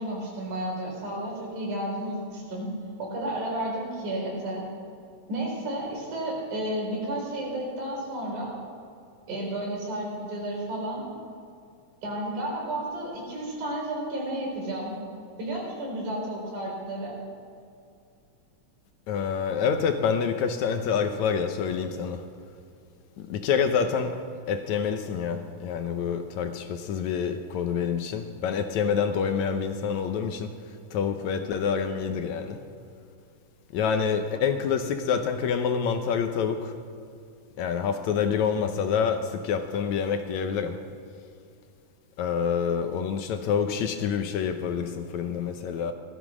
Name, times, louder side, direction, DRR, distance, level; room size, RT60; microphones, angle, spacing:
voice 1, 0.0-2.7 3.0-4.7 5.3-8.5 9.3-11.0 12.0-15.0 15.4-17.1, right 1 dB, 75° right, 5.8 m, -32 dB
voice 2, 19.1-22.2 23.3-24.2 24.5-30.5 30.9-32.6 33.7-36.7 37.6-40.8 42.2-45.9, left 6 dB, 75° left, 2.0 m, -27 dB
17.5 x 13.0 x 6.2 m
omnidirectional pair, 3.6 m